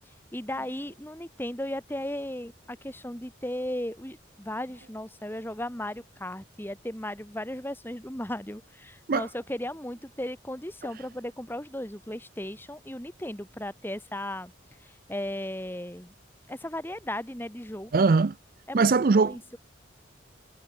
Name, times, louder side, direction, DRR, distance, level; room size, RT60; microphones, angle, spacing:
voice 1, 0.3-14.5 14.8-16.1 16.5-18.1 18.7-18.9 19.2-19.6, left 1 dB, 10° left, 2.7 m, -36 dB
voice 2, 17.9-18.3 18.7-19.4, right 4 dB, 50° right, 0.5 m, -21 dB
head